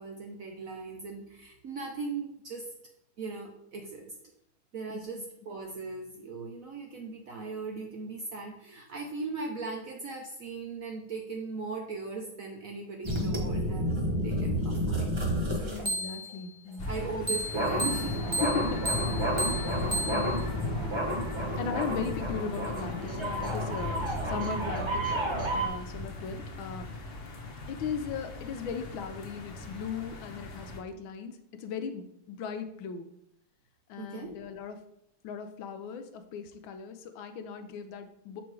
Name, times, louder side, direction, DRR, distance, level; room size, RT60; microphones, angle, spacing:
voice 1, 0.0-2.7 3.2-4.2 4.7-14.0 14.2-15.2 15.6-15.9 16.9-18.2 21.4-21.7 34.0-34.3, right 4 dB, 65° right, 1 dB, 0.8 m, -39 dB
voice 2, 4.9-5.2 15.6-17.1 18.4-19.0 19.4-20.4 21.6-25.1 25.5-26.9 27.7-33.1 33.9-34.8 35.2-38.4, left 6 dB, 90° left, 8 dB, 1.4 m, -38 dB
sound 1, 13.0-16.4 17.3-25.7, equal, 40° right, 0.4 m, -30 dB
sound 2, 16.8-30.8, left 2 dB, 45° left, 1.2 m, -39 dB
7.0 x 3.0 x 4.7 m, 0.78 s
omnidirectional pair, 2.2 m